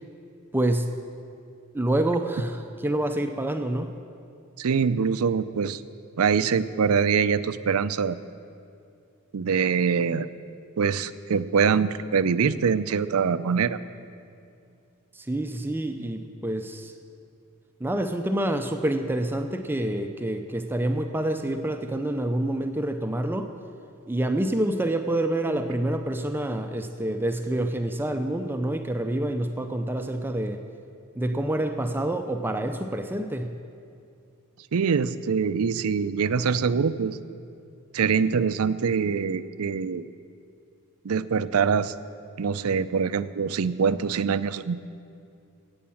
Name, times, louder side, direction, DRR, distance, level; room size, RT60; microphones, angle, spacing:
voice 1, 0.5-0.9 1.7-3.9 15.1-16.9 17.8-23.5 24.1-30.6 31.2-33.5, right 1 dB, 10° right, 6 dB, 0.5 m, -27 dB
voice 2, 4.6-5.8 6.2-8.2 9.3-10.3 10.8-13.8 34.7-37.2 37.9-40.1 41.0-41.9 42.4-44.8, right 6 dB, 80° right, 15 dB, 0.5 m, -24 dB
15.5 x 8.6 x 7.1 m, 2.5 s
head